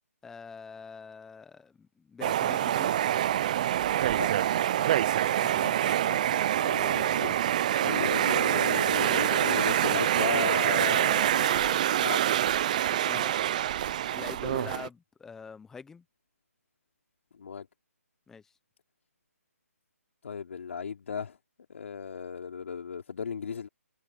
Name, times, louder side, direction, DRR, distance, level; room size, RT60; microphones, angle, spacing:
voice 1, 0.2-2.9 5.5-5.9 12.8-13.4 14.1-16.0 18.3-18.4, left 5 dB, 5° left, 0.9 m, -44 dB
sound 1, 2.2-14.9, right 11 dB, 30° right, 0.5 m, -26 dB
voice 2, 6.1-7.4 7.8-12.2 14.5-14.6 17.3-17.7 20.2-21.4 21.7-23.7, left 6 dB, 55° left, 4.7 m, -35 dB
hypercardioid pair, 160°, 8 cm